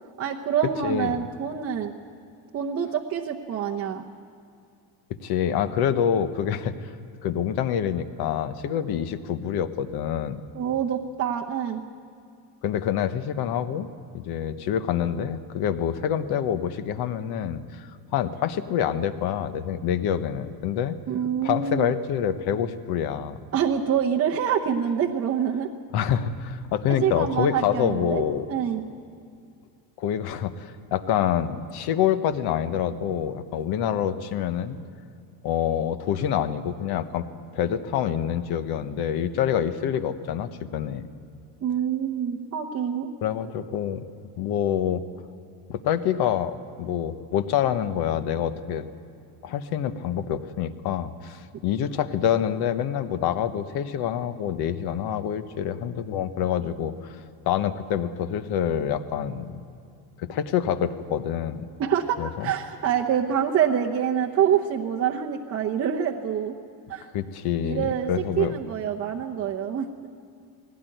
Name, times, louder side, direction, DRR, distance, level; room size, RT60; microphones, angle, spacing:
voice 1, 0.2-1.9 2.5-4.0 10.5-11.8 21.1-21.9 23.5-25.7 27.0-28.2 28.5-28.8 41.6-43.1 61.8-66.5 66.9-67.1 67.6-68.1 68.4-70.1, right 8 dB, 30° right, 0 dB, 0.9 m, -26 dB
voice 2, 0.8-1.3 5.2-6.9 7.2-10.4 12.6-13.9 14.1-21.0 21.4-23.4 25.9-28.5 30.0-34.8 35.4-37.3 37.5-41.1 43.2-44.0 44.4-45.0 45.7-48.9 49.4-59.6 60.2-61.7 62.2-62.5 67.1-68.6, left 9 dB, 50° left, 11 dB, 1.2 m, -26 dB
19.5 x 17.0 x 9.2 m, 2.4 s
cardioid pair, 155°, 47 cm